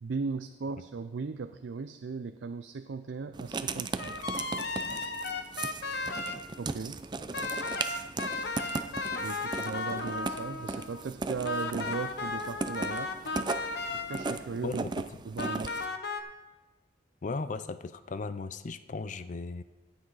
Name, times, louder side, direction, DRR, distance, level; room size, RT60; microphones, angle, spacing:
voice 1, 0.0-4.2 6.6-7.0 9.2-13.1 13.9-14.8 15.2-15.8, right 4 dB, 80° right, 9 dB, 0.4 m, -37 dB
Writing, 3.3-15.9, right 3 dB, 25° right, 0.4 m, -37 dB
sound 1, 4.0-6.4 7.3-11.1 11.4-14.5 15.4-16.2, left 3 dB, 65° left, 0.9 m, -35 dB
voice 2, 14.6-15.1 17.2-19.6, left 4 dB, 45° left, 13 dB, 0.4 m, -36 dB
14.0 x 8.7 x 4.0 m, 1.1 s
head